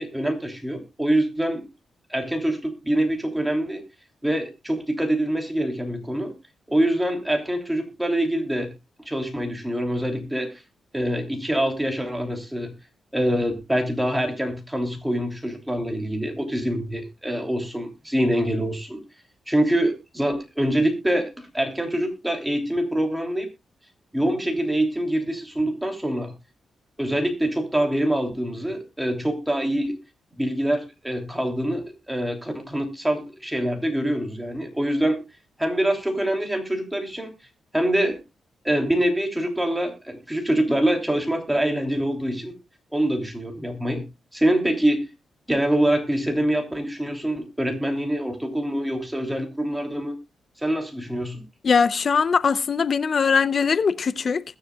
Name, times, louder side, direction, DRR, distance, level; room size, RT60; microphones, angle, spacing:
voice 1, 0.0-1.6 2.1-3.8 4.2-6.3 6.7-8.7 9.0-10.6 10.9-12.7 13.1-19.0 19.5-23.5 24.1-26.3 27.0-30.0 30.4-35.2 35.6-37.3 37.7-38.2 38.6-42.5 42.9-44.0 44.3-45.1 45.5-50.2 50.6-51.4, right 1 dB, 5° right, 3.1 m, -25 dB
voice 2, 51.6-54.4, left 5 dB, 50° left, 0.7 m, -21 dB
21.0 x 7.3 x 2.4 m
cardioid pair, 100°, 0 cm